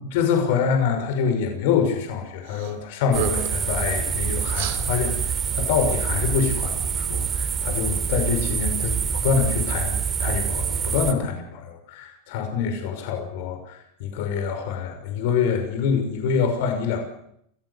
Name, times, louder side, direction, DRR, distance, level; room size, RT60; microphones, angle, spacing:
voice 1, 0.0-17.0, left 6 dB, 65° left, 5 dB, 5.9 m, -25 dB
sound 1, 2.5-2.7 3.0-3.7 4.5-4.8, right 11 dB, 65° right, 3.0 m, -31 dB
sound 2, 3.1-11.1, right 7 dB, 25° right, 3.2 m, -26 dB
27.5 x 16.5 x 8.3 m, 0.72 s
supercardioid pair, 120°, 0 cm